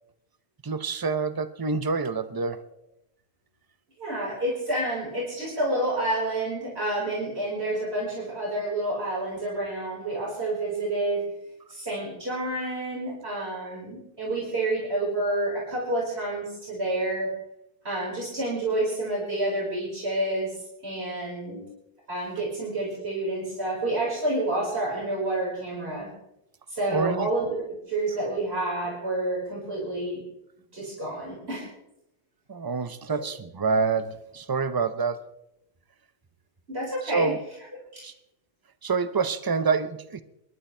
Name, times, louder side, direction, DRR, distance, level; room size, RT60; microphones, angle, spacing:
voice 1, 0.6-2.6 26.9-27.3 32.5-35.2 37.0-37.4 38.0-38.1 38.8-40.2, right 4 dB, 25° right, 12 dB, 0.6 m, -27 dB
voice 2, 4.0-11.2 11.7-17.3 17.8-20.5 20.8-21.6 22.1-26.1 26.7-27.6 27.9-30.2 30.7-31.7 33.1-33.3 36.7-37.3 37.9-38.1, right 1 dB, 65° right, -6 dB, 5.4 m, -29 dB
28.5 x 11.5 x 3.3 m, 0.82 s
omnidirectional pair, 1.2 m